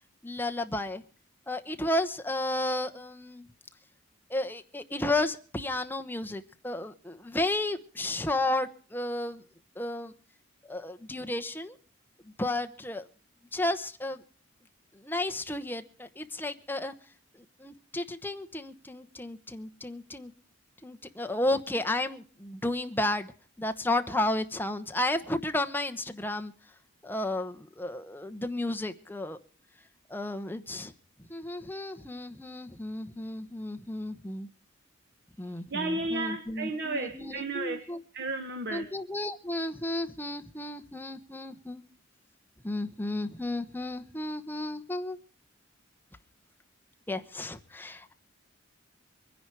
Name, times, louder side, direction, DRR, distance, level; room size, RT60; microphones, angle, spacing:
voice 1, 0.2-1.0 1.5-3.5 4.3-9.4 9.8-10.1 10.7-11.7 12.4-13.0 13.5-14.2 15.0-16.9 17.6-20.3 20.8-23.3 23.6-26.5 27.0-29.4 30.1-30.9 31.3-34.5 35.4-38.0 38.7-41.8 42.6-45.2 47.1-48.1, left 1 dB, 10° left, 6 dB, 1.0 m, -32 dB
voice 2, 35.7-39.0, right 2 dB, 55° right, 7 dB, 1.2 m, -33 dB
23.5 x 10.5 x 4.8 m, 0.42 s
head